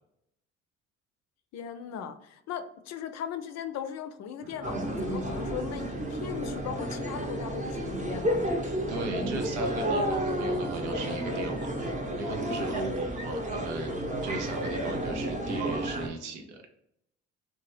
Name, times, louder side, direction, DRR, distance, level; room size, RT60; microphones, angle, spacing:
voice 1, 1.5-8.4, left 8 dB, 50° left, 9 dB, 0.5 m, -38 dB
Bowed string instrument, 4.4-12.7, left 1 dB, 65° right, 0.9 m, -44 dB
sound 1, 4.6-16.1, right 1 dB, 20° right, 0.7 m, -31 dB
voice 2, 8.6-13.9 14.2-16.7, right 3 dB, 90° right, 4 dB, 0.5 m, -38 dB
2.8 x 2.2 x 3.1 m, 0.77 s
hypercardioid pair, 50°, 34 cm